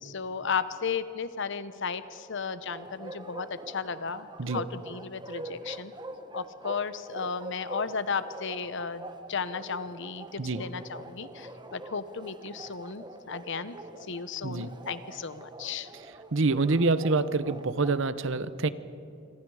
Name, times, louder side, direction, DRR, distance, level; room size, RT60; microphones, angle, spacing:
voice 1, 0.0-5.9 6.3-13.8 14.1-15.9, left 5 dB, 65° left, 13 dB, 1.0 m, -34 dB
Bark, 2.7-18.0, right 1 dB, 20° right, 1.1 m, -44 dB
voice 2, 16.3-18.7, right 3 dB, 65° right, 14 dB, 0.8 m, -26 dB
26.0 x 25.5 x 4.9 m, 2.8 s
head